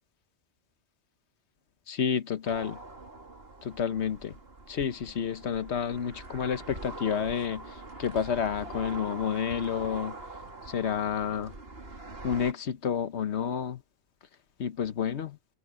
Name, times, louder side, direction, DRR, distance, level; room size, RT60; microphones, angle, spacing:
voice 1, 1.9-2.8 3.6-4.3 4.7-7.6 8.0-10.2 10.7-11.5 12.2-13.8 14.6-15.4, left 7 dB, 80° left, 1.3 m, -30 dB
sound 1, 2.5-12.5, right 2 dB, 60° right, 2.8 m, -43 dB
omnidirectional pair, 1.1 m